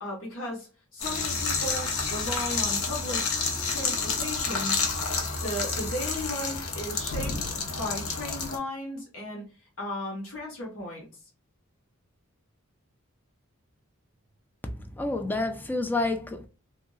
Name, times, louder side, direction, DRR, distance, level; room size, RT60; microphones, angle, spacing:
voice 1, 0.0-3.2 3.7-4.8 5.4-7.3 7.8-9.4 9.8-11.0, left 1 dB, 65° left, 1.3 m, -35 dB
sound 1, 1.0-8.6, left 4 dB, 90° left, 0.9 m, -29 dB
voice 2, 14.6-16.5, left 2 dB, 10° left, 0.4 m, -29 dB
2.8 x 2.8 x 2.3 m
head